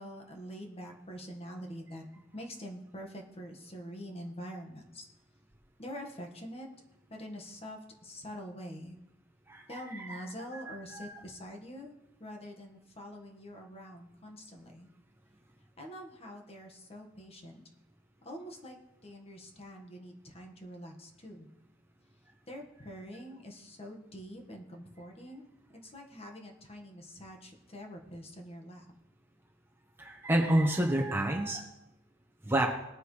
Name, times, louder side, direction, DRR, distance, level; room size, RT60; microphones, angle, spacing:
voice 1, 0.0-2.0 2.3-5.1 5.8-6.7 7.1-9.0 9.7-11.9 12.2-14.9 15.8-17.6 18.2-21.5 22.5-28.9, equal, 30° left, 1 dB, 1.7 m, -45 dB
voice 2, 9.5-10.2 10.5-10.6 10.9-11.2 30.0-31.7 32.4-32.7, right 1 dB, 10° right, 0 dB, 1.2 m, -29 dB
20.0 x 9.2 x 3.3 m, 0.91 s
head